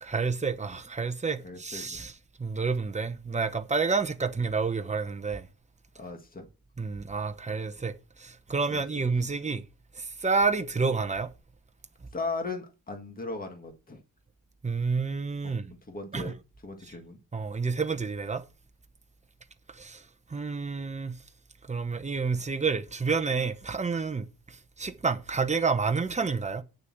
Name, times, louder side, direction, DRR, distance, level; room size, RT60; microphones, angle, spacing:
voice 1, 0.0-2.1 2.4-5.5 6.8-7.9 8.2-9.6 10.0-11.3 14.6-15.7 16.1-16.3 16.8-16.9 17.3-18.4 19.7-20.0 20.3-21.2 21.7-26.6, right 4 dB, 20° right, 0.9 m, -29 dB
voice 2, 1.4-2.0 6.0-6.5 8.7-9.0 12.1-14.0 15.4-15.6 15.9-16.3 16.6-17.2, left 3 dB, 25° left, 1.8 m, -37 dB
9.5 x 6.8 x 6.0 m
wide cardioid pair, 165°, 37 cm